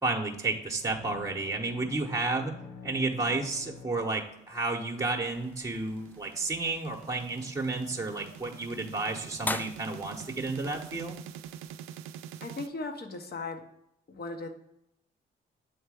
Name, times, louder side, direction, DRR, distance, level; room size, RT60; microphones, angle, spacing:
voice 1, 0.0-11.2, right 3 dB, 15° right, 1 dB, 1.0 m, -32 dB
sound 1, 0.8-4.6, left 5 dB, 85° left, 0.8 m, -48 dB
sound 2, 4.6-12.7, right 9 dB, 85° right, 0.4 m, -46 dB
sound 3, 5.3-11.8, left 2 dB, 10° left, 0.3 m, -43 dB
voice 2, 12.4-13.6 14.1-14.5, left 3 dB, 50° left, 5 dB, 1.2 m, -37 dB
7.3 x 3.3 x 4.8 m, 0.82 s
supercardioid pair, 60°, 21 cm